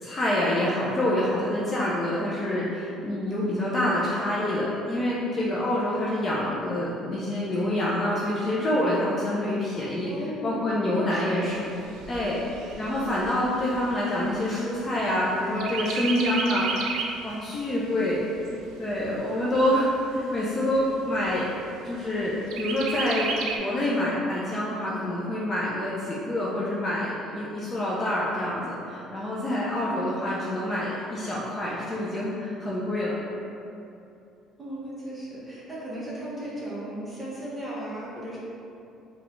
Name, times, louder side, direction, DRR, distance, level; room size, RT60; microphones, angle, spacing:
voice 1, 0.0-10.1 10.4-11.7 12.1-18.3 18.8-21.5 21.8-23.3 23.6-33.2, left 1 dB, 25° left, -6 dB, 0.4 m, -27 dB
voice 2, 10.1-11.2 29.8-30.1 34.6-38.4, right 1 dB, 10° right, -8 dB, 0.9 m, -36 dB
Chirp tweet, 11.5-15.2 15.6-17.3 17.7-17.8 18.1-19.1 19.7-19.8 20.2-20.3 20.7-21.2 22.5-23.6, right 5 dB, 80° right, 0.4 m, -33 dB
3.9 x 2.3 x 3.1 m, 2.7 s
cardioid pair, 145°, 0 cm